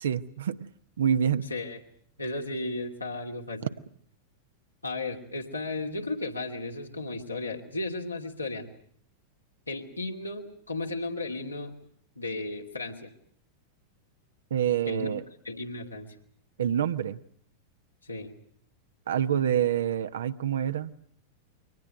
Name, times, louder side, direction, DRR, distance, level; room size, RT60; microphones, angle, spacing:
voice 1, 0.0-0.7 1.0-1.5 14.5-15.2 16.6-17.2 19.1-20.9, right 9 dB, 65° right, 12 dB, 1.0 m, -27 dB
voice 2, 2.2-3.7 4.8-8.7 9.7-11.7 12.2-13.1 14.8-15.1 15.4-16.1 18.0-18.3, left 2 dB, 80° left, 2 dB, 2.8 m, -34 dB
23.5 x 19.0 x 9.2 m, 0.65 s
figure-of-eight pair, 90°, 0 cm